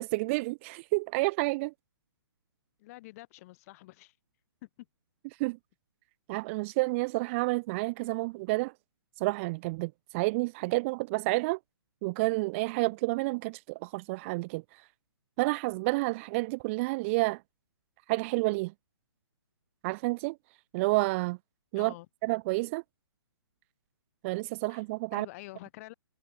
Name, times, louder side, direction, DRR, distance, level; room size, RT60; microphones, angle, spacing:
voice 1, 0.0-1.7 5.4-5.6 6.3-8.7 9.2-11.6 12.0-14.6 15.4-17.4 18.1-18.7 19.8-20.4 20.7-21.4 21.7-21.9 22.2-22.8 24.2-25.3, right 24 dB, 30° right, 1.0 m, -29 dB
voice 2, 2.8-4.1 4.6-4.9 21.7-22.1 24.7-24.8 25.1-25.9, left 19 dB, 35° left, 6.6 m, -47 dB
hypercardioid pair, 145°, 14 cm